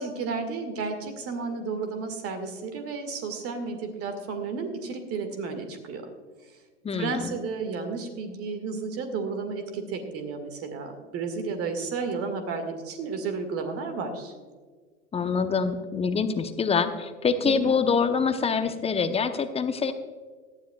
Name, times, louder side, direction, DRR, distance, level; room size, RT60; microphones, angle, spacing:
voice 1, 0.0-6.1 6.4-6.6 6.9-14.4 17.4-17.7, right 4 dB, 40° right, 6 dB, 1.9 m, -32 dB
voice 2, 6.8-7.3 15.1-19.9, left 5 dB, 15° left, 9 dB, 0.9 m, -25 dB
18.0 x 12.5 x 2.3 m, 1.5 s
figure-of-eight pair, 85°, 36 cm